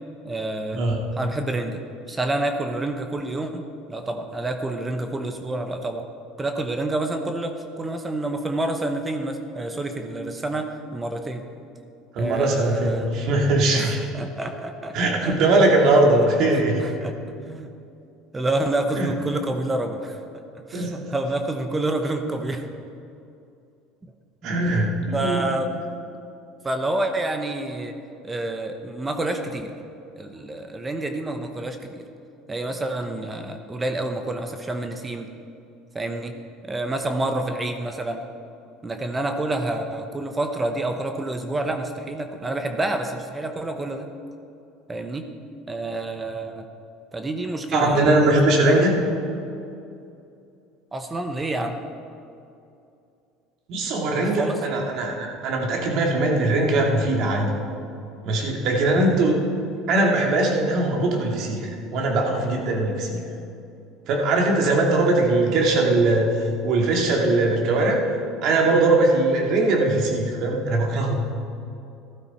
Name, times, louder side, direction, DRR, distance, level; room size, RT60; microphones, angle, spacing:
voice 1, 0.2-0.8 1.1-1.8 2.1-6.0 6.4-11.4 12.2-13.1 13.7-15.0 15.2-15.4 16.6-17.1 17.5-17.7 18.3-20.2 20.5-22.7 24.4-24.5 25.1-25.8 26.6-28.0 28.2-29.7 30.2-32.0 32.5-35.3 35.9-36.4 36.6-38.2 38.8-44.1 44.9-45.3 45.7-46.7 47.1-48.3 48.6-48.9 50.9-51.8 54.1-54.6, right 2 dB, 20° right, 6 dB, 1.0 m, -28 dB
voice 2, 12.2-14.0 14.9-16.9 19.0-19.1 20.7-21.0 24.4-25.5 47.7-48.9 53.7-57.5 58.2-59.4 59.9-61.7 61.9-63.2 64.1-66.3 66.6-68.0 68.4-71.2, right 2 dB, 60° right, 0 dB, 2.6 m, -20 dB
14.0 x 12.5 x 4.4 m, 2.6 s
supercardioid pair, 105°, 0 cm